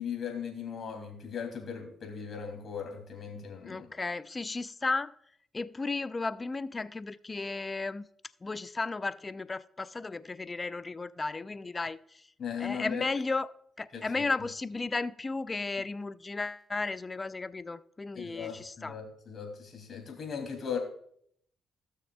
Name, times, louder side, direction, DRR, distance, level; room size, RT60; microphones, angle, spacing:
voice 1, 0.0-3.9 12.4-13.0 13.9-14.2 18.1-20.8, left 7 dB, 50° left, 2.6 m, -38 dB
voice 2, 3.6-5.1 5.5-8.1 8.4-12.3 12.6-13.5 13.8-18.9, left 3 dB, 25° left, 0.3 m, -34 dB
16.5 x 6.5 x 2.3 m
cardioid pair, 90°, 0 cm